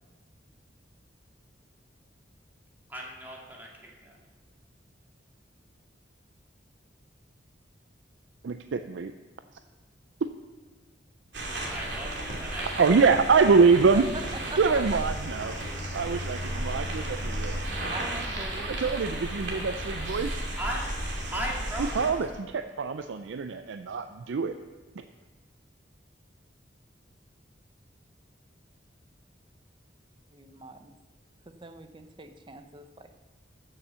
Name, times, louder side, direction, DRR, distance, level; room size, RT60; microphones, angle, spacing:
voice 1, 2.9-3.7 4.0-4.2 11.7-13.0 18.4-18.5 20.6-20.9 21.3-22.1, right 1 dB, 10° right, -3 dB, 2.2 m, -36 dB
voice 2, 8.4-9.1 10.2-10.3 12.7-14.1 14.6-15.6 15.9-17.6 18.6-20.4 21.8-24.5 25.0-25.1, right 5 dB, 90° right, 9 dB, 0.4 m, -24 dB
sound 1, 11.3-22.1, right 1 dB, 70° right, 2.7 m, -33 dB
voice 3, 13.7-14.2 14.5-15.0 16.9-17.1 17.9-19.1 30.3-30.9 31.5-33.2, right 2 dB, 25° right, 8 dB, 0.7 m, -42 dB
14.0 x 7.1 x 5.6 m, 1.3 s
head